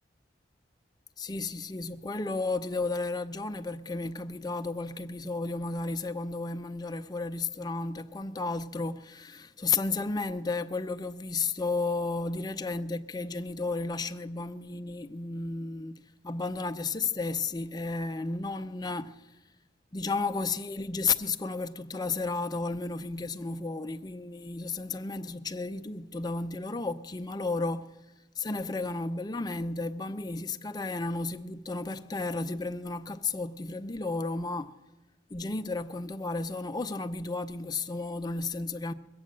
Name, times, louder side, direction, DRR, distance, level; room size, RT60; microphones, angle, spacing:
voice 1, 1.2-19.3 19.9-27.9 28.4-34.8 35.3-38.9, left 3 dB, 20° left, 0.5 m, -33 dB
21.0 x 8.5 x 7.4 m
head